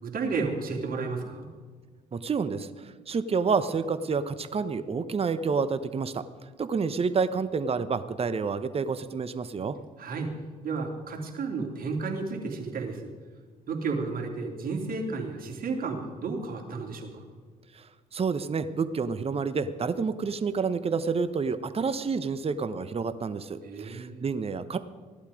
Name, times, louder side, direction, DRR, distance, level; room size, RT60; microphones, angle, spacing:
voice 1, 0.0-1.5 10.0-10.3 10.6-13.1 13.7-17.2 23.6-24.2, right 4 dB, 50° right, 1 dB, 2.9 m, -32 dB
voice 2, 2.1-6.2 6.6-9.8 17.7-17.8 18.1-24.8, right 5 dB, 30° right, 12 dB, 0.9 m, -29 dB
17.0 x 11.5 x 5.1 m, 1.5 s
hypercardioid pair, 50°, 19 cm